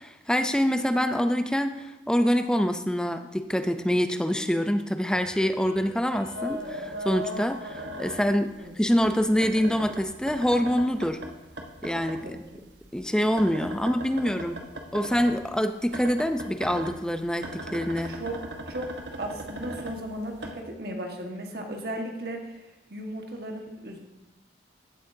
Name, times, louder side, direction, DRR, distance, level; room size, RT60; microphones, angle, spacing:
voice 1, 0.0-11.2 11.8-12.4 12.9-14.6 14.9-18.1, equal, 5° left, 8 dB, 0.5 m, -25 dB
Piano, 5.1-8.5, equal, 15° right, 3.2 m, -52 dB
sound 1, 6.4-8.7 9.0-12.2 12.5-15.4 15.9-20.5, right 1 dB, 85° right, 1.2 m, -38 dB
voice 2, 18.0-18.4 18.7-18.9 19.2-24.0, right 1 dB, 55° right, 2 dB, 1.5 m, -36 dB
15.0 x 8.2 x 2.7 m, 1.0 s
head